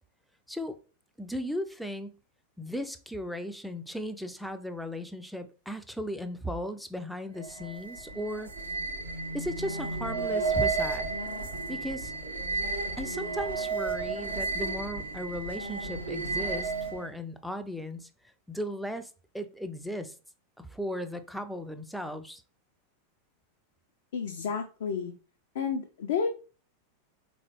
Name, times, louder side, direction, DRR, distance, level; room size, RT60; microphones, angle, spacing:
voice 1, 1.2-2.2 2.6-8.5 9.3-11.1 11.7-12.1 13.0-18.1 18.5-20.1 20.6-22.4, equal, ahead, 0.4 m, -36 dB
sound 1, 7.3-17.1, right 3 dB, 75° right, 0.9 m, -32 dB
voice 2, 24.1-25.1 25.5-26.3, left 6 dB, 60° left, 0.5 m, -31 dB
3.8 x 3.1 x 3.0 m
figure-of-eight pair, 90°, 0 cm